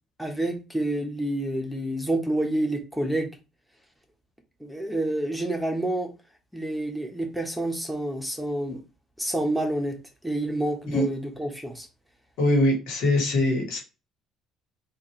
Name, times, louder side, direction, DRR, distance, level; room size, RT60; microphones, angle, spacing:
voice 1, 0.2-3.3 4.6-6.1 6.5-8.8 9.2-10.0 10.2-11.9, right 1 dB, ahead, 1.1 m, -28 dB
voice 2, 12.4-13.8, left 1 dB, 75° left, 1.4 m, -22 dB
4.1 x 2.5 x 3.1 m
hypercardioid pair, 65°, 0 cm